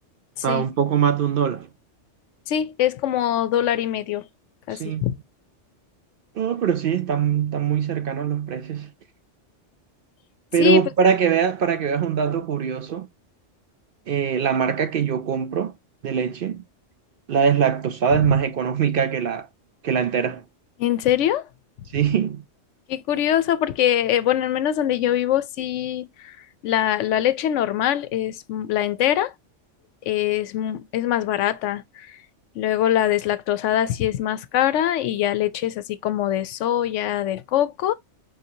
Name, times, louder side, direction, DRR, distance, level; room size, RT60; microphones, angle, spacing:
voice 1, 0.4-1.7 4.7-5.1 6.4-8.9 10.5-13.1 14.1-15.7 16.0-16.6 17.3-19.5 19.8-20.4 21.9-22.4, right 7 dB, 60° right, 0.6 m, -22 dB
voice 2, 2.5-4.3 4.7-5.1 10.6-10.8 20.8-21.5 22.9-26.4 26.6-29.3 30.0-32.2 32.5-37.9, left 11 dB, 80° left, 0.9 m, -23 dB
5.4 x 2.6 x 2.7 m
omnidirectional pair, 1.2 m